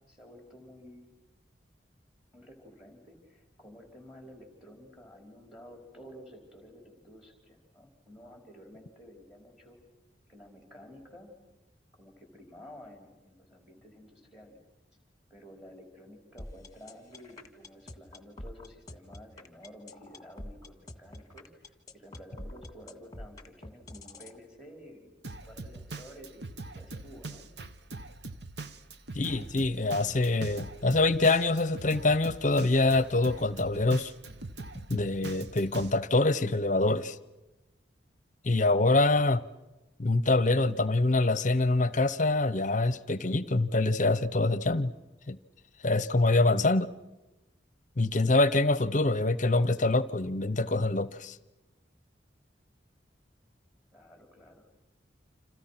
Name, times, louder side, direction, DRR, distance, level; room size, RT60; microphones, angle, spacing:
voice 1, 0.1-1.1 2.3-9.8 10.3-11.3 12.0-14.6 15.3-25.1 25.4-26.5 26.7-27.5 53.9-54.7, equal, 5° right, 4.7 m, -51 dB
sound 1, 16.4-24.4, left 1 dB, 20° left, 1.8 m, -45 dB
Drum kit, 25.2-35.9, right 3 dB, 65° right, 1.0 m, -42 dB
voice 2, 29.1-34.1 34.9-37.2 38.4-39.4 40.0-44.9 45.3-45.4 45.8-46.9 48.0-51.4, left 2 dB, 45° left, 0.8 m, -25 dB
29.5 x 27.0 x 5.9 m
head